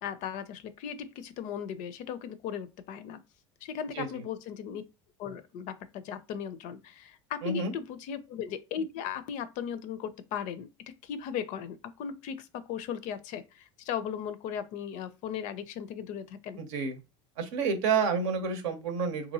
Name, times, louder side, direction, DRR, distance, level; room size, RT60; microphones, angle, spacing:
voice 1, 0.0-3.2 3.6-4.8 5.2-10.7 11.0-16.6, left 8 dB, 55° left, 0.4 m, -37 dB
voice 2, 7.4-7.7 16.6-17.0 17.4-19.3, right 5 dB, 70° right, 0.7 m, -29 dB
2.7 x 2.5 x 2.7 m
hypercardioid pair, 80°, 15 cm